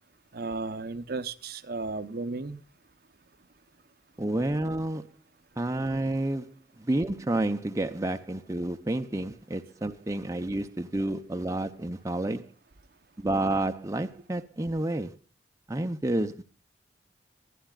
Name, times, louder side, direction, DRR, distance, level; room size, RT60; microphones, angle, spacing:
voice 1, 0.3-2.6, right 3 dB, 55° right, 0.8 m, -34 dB
voice 2, 4.2-5.1 5.6-12.5 13.2-15.2 15.7-16.4, right 1 dB, 20° right, 0.7 m, -30 dB
23.5 x 10.0 x 2.4 m
head